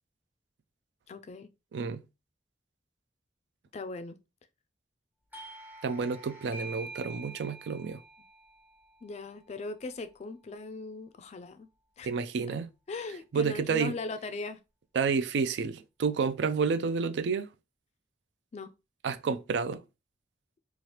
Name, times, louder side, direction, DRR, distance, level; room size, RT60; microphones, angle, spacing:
voice 1, 1.1-1.5 3.7-4.2 9.0-11.7 12.0-12.1 12.9-14.6 18.5-18.7, left 3 dB, 40° left, 0.3 m, -39 dB
voice 2, 1.7-2.0 5.8-8.0 12.0-12.7 13.3-14.0 14.9-17.5 19.0-19.8, right 5 dB, 75° right, 0.4 m, -30 dB
Doorbell, 5.3-10.6, right 2 dB, 10° right, 0.8 m, -47 dB
3.1 x 2.4 x 2.9 m
head